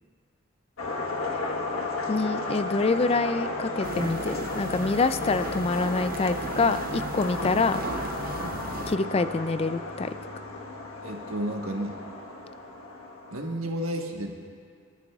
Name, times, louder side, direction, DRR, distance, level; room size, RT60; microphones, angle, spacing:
sound 1, 0.8-13.5, left 2 dB, 85° left, 1.4 m, -34 dB
voice 1, 2.1-7.8 8.9-10.1, left 3 dB, 30° left, 12 dB, 0.3 m, -26 dB
sound 2, 3.8-9.0, right 3 dB, 45° right, 0.6 m, -37 dB
voice 2, 11.0-12.0 13.3-14.3, right 1 dB, 90° right, 1 dB, 1.4 m, -32 dB
26.0 x 12.5 x 2.4 m, 2.2 s
head